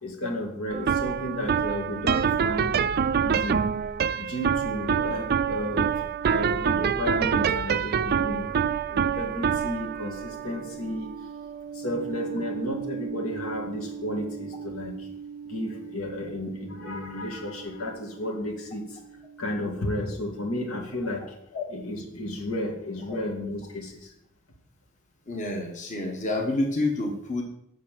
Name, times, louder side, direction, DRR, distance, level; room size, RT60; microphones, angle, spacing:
voice 1, 0.0-2.8 3.2-3.7 4.2-11.3 11.7-15.1 15.4-19.0 19.4-21.4 21.7-24.1, left 1 dB, 80° left, 1 dB, 2.2 m, -33 dB
sound 1, 0.7-17.9, right 7 dB, 50° right, 0.4 m, -28 dB
voice 2, 25.3-27.4, left 2 dB, 35° left, 1 dB, 1.3 m, -28 dB
7.5 x 6.2 x 7.5 m, 0.77 s
head